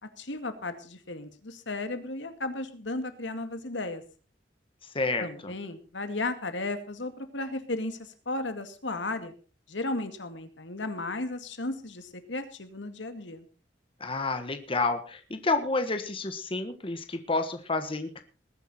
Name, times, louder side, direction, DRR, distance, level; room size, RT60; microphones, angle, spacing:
voice 1, 0.0-4.0 5.2-9.3 9.7-13.5, left 2 dB, 85° left, 9 dB, 2.2 m, -35 dB
voice 2, 4.9-5.5 14.0-18.2, left 3 dB, 30° left, 8 dB, 1.4 m, -30 dB
20.0 x 10.5 x 4.2 m, 0.36 s
head